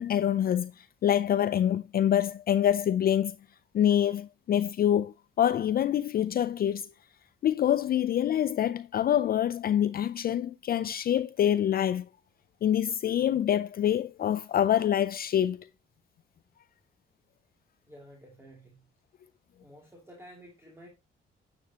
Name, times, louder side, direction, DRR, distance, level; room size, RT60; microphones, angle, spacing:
voice 1, 0.0-3.4 3.7-6.9 7.4-12.1 12.6-15.7, left 10 dB, 50° left, 0.4 m, -26 dB
voice 2, 17.9-18.8 19.6-20.9, equal, 10° right, 2.6 m, -51 dB
9.6 x 8.2 x 2.8 m
cardioid pair, 90°, 20 cm